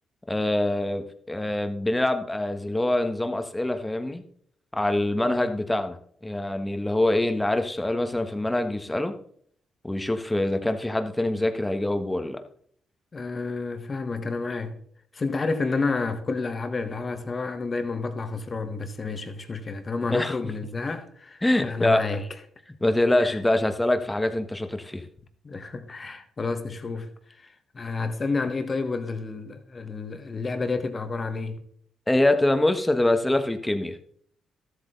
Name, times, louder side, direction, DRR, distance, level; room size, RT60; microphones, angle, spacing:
voice 1, 0.3-4.2 4.7-6.0 6.2-9.1 9.8-12.4 20.1-20.4 21.4-22.0 22.8-25.0 32.1-34.0, left 1 dB, 10° left, 1.5 m, -24 dB
voice 2, 13.1-14.8 15.1-22.2 23.2-23.4 25.4-27.1 27.4-31.6, left 3 dB, 40° left, 1.6 m, -30 dB
13.0 x 8.1 x 4.0 m
supercardioid pair, 60°, 0 cm